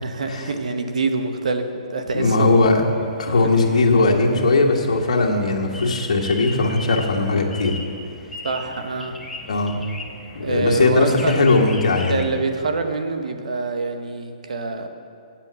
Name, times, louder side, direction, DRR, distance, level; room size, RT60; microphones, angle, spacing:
voice 1, 0.0-2.6 3.3-3.4 8.4-9.2 10.4-11.5 12.1-14.9, right 3 dB, 85° right, 6 dB, 1.1 m, -25 dB
voice 2, 2.1-2.8 3.2-7.8 9.5-9.7 10.3-12.2, left 3 dB, 75° left, 0 dB, 1.6 m, -19 dB
sound 1, 2.5-12.3, left 2 dB, 5° left, 0.8 m, -39 dB
8.7 x 7.5 x 8.2 m, 2.3 s
hypercardioid pair, 145°, 4 cm